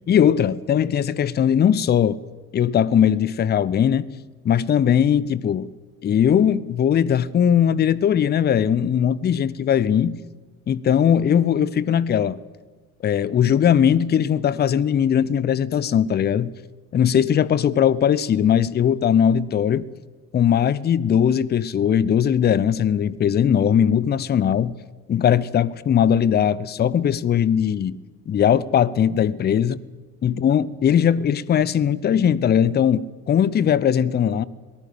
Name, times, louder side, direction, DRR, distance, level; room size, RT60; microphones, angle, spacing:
voice 1, 0.1-2.2 2.5-4.1 4.4-5.7 6.0-10.2 10.7-12.4 13.0-16.5 16.9-19.9 20.3-24.7 25.1-28.0 28.3-29.8 30.2-34.4, left 8 dB, 20° left, 0.7 m, -19 dB
25.0 x 18.5 x 7.7 m
figure-of-eight pair, 60°, 46 cm